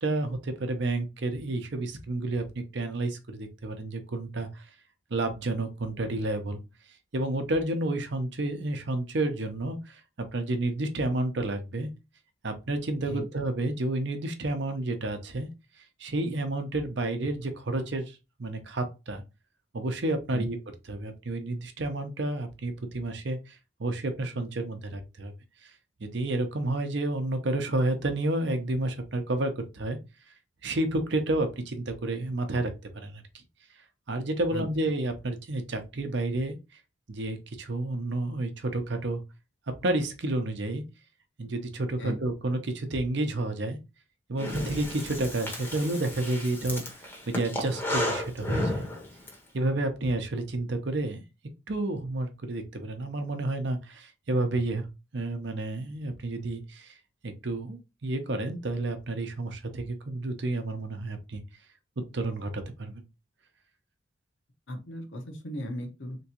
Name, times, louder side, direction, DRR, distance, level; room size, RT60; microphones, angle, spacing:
voice 1, 0.0-4.5 5.1-6.6 7.1-11.9 12.4-15.5 16.0-19.2 19.7-20.6 20.9-23.5 23.8-25.3 26.0-30.0 30.6-33.2 34.1-36.6 37.1-39.2 39.8-40.8 41.4-43.8 44.3-46.8 47.3-48.8 49.5-51.2 51.7-54.9 55.1-56.9 57.2-61.4 62.0-63.0, right 2 dB, 60° right, 0.7 m, -30 dB
Breathing, 44.4-49.3, left 1 dB, 10° left, 0.7 m, -33 dB
voice 2, 64.7-66.2, equal, 65° left, 0.9 m, -36 dB
3.5 x 3.0 x 2.9 m
head